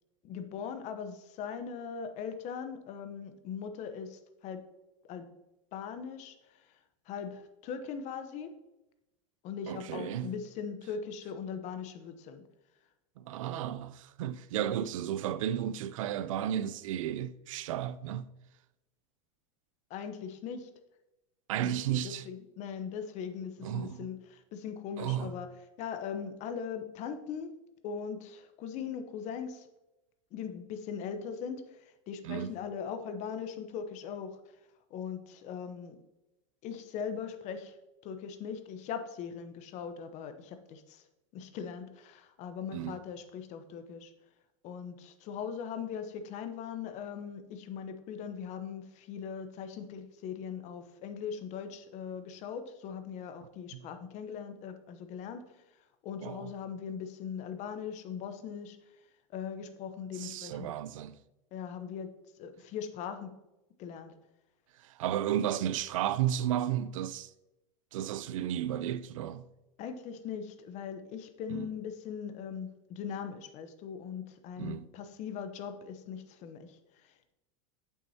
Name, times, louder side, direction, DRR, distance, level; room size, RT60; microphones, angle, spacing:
voice 1, 0.2-4.6 5.1-5.3 5.7-6.8 7.1-8.5 9.4-12.4 19.9-20.7 21.6-25.5 25.8-27.5 27.8-29.7 30.3-34.4 34.9-36.0 36.6-37.8 38.0-41.0 41.3-44.1 44.6-55.6 56.0-58.8 59.3-60.7 61.5-62.1 62.4-63.3 63.8-64.1 69.8-77.3, left 7 dB, 45° left, 0.9 m, -40 dB
voice 2, 9.7-10.3 13.2-18.3 21.5-22.3 23.6-24.1 25.0-25.3 32.2-32.6 42.7-43.0 53.7-53.9 56.2-56.5 60.2-61.1 64.8-67.3 67.9-69.5 71.5-71.7 74.6-74.9, right 11 dB, 85° right, 0.5 m, -33 dB
8.4 x 7.3 x 2.8 m
supercardioid pair, 125°, 17 cm